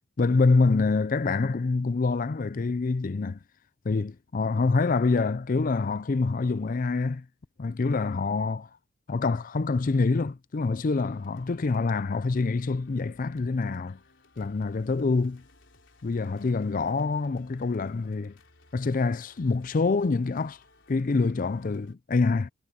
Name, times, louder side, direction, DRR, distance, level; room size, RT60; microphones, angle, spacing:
voice 1, 0.2-3.4 3.8-7.3 7.6-8.7 9.1-14.0 14.4-15.4 16.0-18.3 18.7-20.6 20.9-22.5, left 3 dB, 40° left, 0.4 m, -26 dB
sound 1, 10.9-21.9, left 2 dB, 65° left, 3.9 m, -60 dB
head